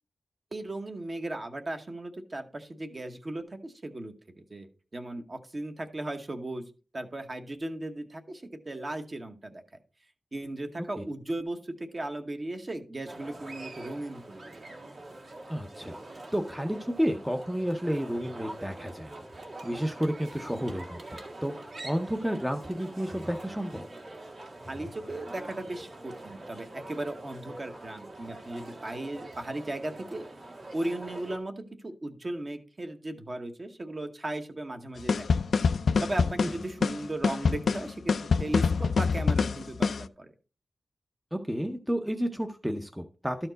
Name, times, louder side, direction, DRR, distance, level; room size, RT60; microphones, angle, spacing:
voice 1, 0.5-6.6 6.9-9.6 10.3-14.6 24.7-30.3 30.7-35.3 36.0-40.3, right 1 dB, 30° right, 6 dB, 0.9 m, -37 dB
sound 1, 13.1-31.4, right 2 dB, 55° right, 1.9 m, -44 dB
voice 2, 15.5-23.8 36.4-36.5 41.3-43.5, equal, 5° right, 4 dB, 0.6 m, -31 dB
sound 2, 35.1-40.1, left 5 dB, 75° left, 0.3 m, -26 dB
12.5 x 4.4 x 3.9 m, 0.36 s
wide cardioid pair, 165°, 0 cm